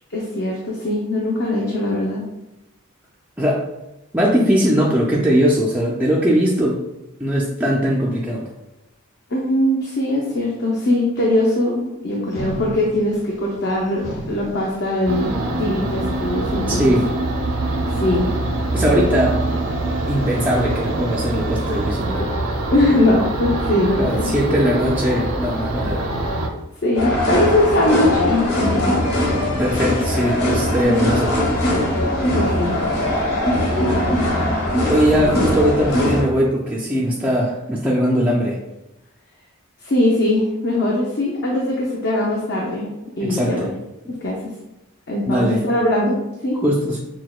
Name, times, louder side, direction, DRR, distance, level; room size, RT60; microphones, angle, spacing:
voice 1, 0.1-2.2 9.3-15.3 15.6-16.8 17.9-18.3 22.1-22.3 22.7-24.3 26.8-28.9 30.8-31.1 32.3-32.8 35.3-35.4 39.8-42.9 43.2-43.7 44.2-44.4 45.1-46.6, left 1 dB, 50° left, -3 dB, 0.6 m, -21 dB
voice 2, 4.1-6.8 7.2-8.5 16.7-17.0 18.7-19.4 20.1-22.2 24.0-26.0 29.6-31.4 34.9-38.6 43.2-43.7 45.3-45.6 46.6-47.0, equal, 5° right, -4 dB, 0.3 m, -20 dB
sound 1, 12.3-21.8, right 1 dB, 30° left, 1.1 m, -38 dB
sound 2, 15.1-26.5, right 2 dB, 70° right, 0.5 m, -24 dB
sound 3, 27.0-36.2, left 1 dB, 85° left, 1.2 m, -20 dB
6.0 x 2.1 x 2.3 m, 0.94 s
head